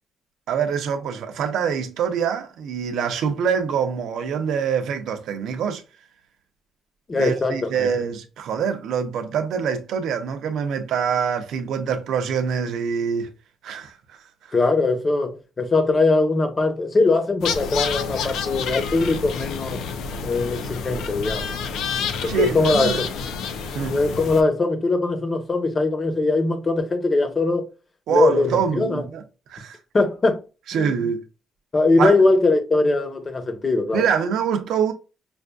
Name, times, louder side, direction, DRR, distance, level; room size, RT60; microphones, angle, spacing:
voice 1, 0.5-5.8 7.2-13.3 13.6-13.9 22.3-23.0 23.7-24.0 28.1-29.2 29.5-29.8 30.7-31.2 32.0-32.2 33.9-34.9, right 7 dB, 80° right, 0.7 m, -24 dB
voice 2, 7.1-7.9 14.5-19.8 20.2-21.6 22.2-23.0 23.9-27.6 28.1-29.0 29.9-30.4 30.7-30.9 31.7-34.0, left 3 dB, 30° left, 1.0 m, -21 dB
sound 1, 17.4-24.4, left 6 dB, 85° left, 0.5 m, -29 dB
5.4 x 2.6 x 2.3 m
cardioid pair, 90°, 0 cm